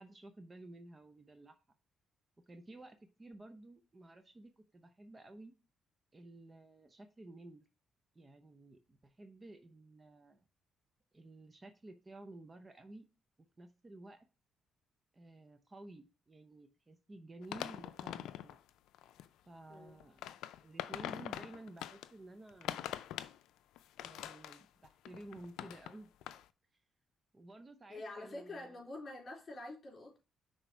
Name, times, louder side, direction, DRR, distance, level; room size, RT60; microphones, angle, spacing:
voice 1, 0.0-1.6 2.5-5.5 6.1-7.6 8.1-10.4 11.1-13.1 13.6-14.2 15.1-18.6 19.5-20.2 20.6-22.8 24.0-26.1 27.3-28.8, right 2 dB, 25° right, 0.8 m, -53 dB
sound 1, 17.4-18.6 18.9-19.3 19.9-22.1 22.5-23.4 23.8-26.0 26.2-26.4, left 12 dB, 90° left, 0.4 m, -43 dB
voice 2, 19.7-20.0 27.9-30.2, left 2 dB, 40° left, 3.9 m, -46 dB
6.0 x 3.9 x 4.6 m
cardioid pair, 90°, 0 cm